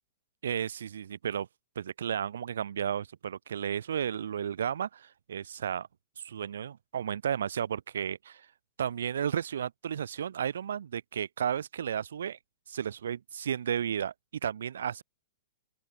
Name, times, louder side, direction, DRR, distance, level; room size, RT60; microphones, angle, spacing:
voice 1, 0.4-1.5 1.8-5.9 6.2-8.4 8.8-12.4 12.7-14.1 14.4-15.0, right 8 dB, 80° right, 0.7 m, -33 dB
open air
hypercardioid pair, 150°, 0 cm